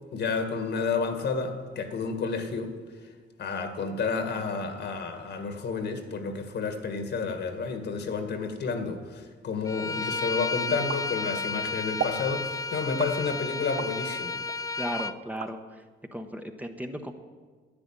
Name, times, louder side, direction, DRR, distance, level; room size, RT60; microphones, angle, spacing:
voice 1, 0.1-2.7 3.4-14.4, left 4 dB, 60° left, 7 dB, 1.8 m, -30 dB
Bowed string instrument, 9.7-15.2, left 3 dB, 15° left, 0.4 m, -32 dB
sound 1, 10.9-11.6 12.0-12.3 13.0-14.0 14.5-15.5, right 8 dB, 55° right, 0.9 m, -35 dB
voice 2, 14.8-15.6 16.1-17.1, equal, 10° right, 5 dB, 1.0 m, -35 dB
10.5 x 10.0 x 8.9 m, 1.4 s
cardioid pair, 90°, 20 cm